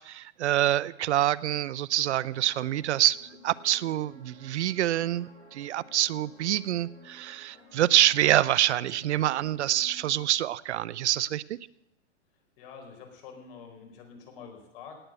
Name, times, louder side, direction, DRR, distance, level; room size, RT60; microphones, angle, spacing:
voice 1, 0.0-3.2 3.4-11.6, right 13 dB, 70° right, 21 dB, 0.7 m, -26 dB
sound 1, 1.9-10.2, left 1 dB, 15° left, 6.6 m, -54 dB
voice 2, 12.6-15.0, left 6 dB, 50° left, 4 dB, 4.5 m, -47 dB
18.0 x 8.2 x 7.6 m, 0.83 s
hypercardioid pair, 145°, 35 cm